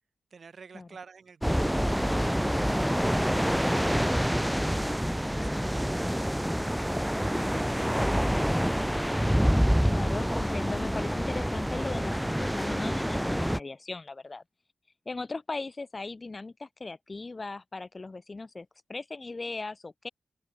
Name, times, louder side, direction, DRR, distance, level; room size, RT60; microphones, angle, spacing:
voice 1, 0.3-3.7 4.2-8.9, right 5 dB, 65° right, 4.5 m, -51 dB
sound 1, 1.4-13.6, equal, ahead, 0.6 m, -27 dB
voice 2, 9.8-14.4 15.0-20.1, left 3 dB, 40° left, 1.5 m, -38 dB
cardioid pair, 75°, 0 cm